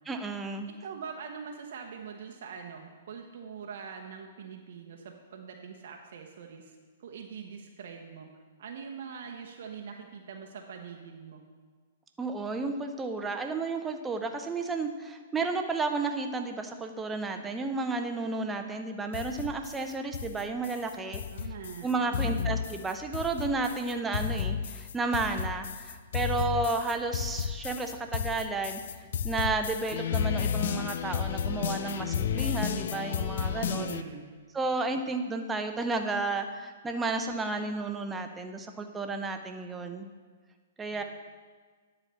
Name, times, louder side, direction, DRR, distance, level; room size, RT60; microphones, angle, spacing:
voice 1, 0.1-0.7 12.2-21.2 21.8-28.8 29.2-33.9 34.5-40.1 40.8-41.0, right 3 dB, 15° right, 5 dB, 0.7 m, -32 dB
voice 2, 0.7-11.4 21.3-22.5 33.7-34.3 40.9-41.0, right 6 dB, 60° right, 2 dB, 0.9 m, -43 dB
sound 1, 19.1-34.0, left 8 dB, 60° left, 0.4 m, -32 dB
10.0 x 4.2 x 6.9 m, 1.5 s
hypercardioid pair, 115°, 0 cm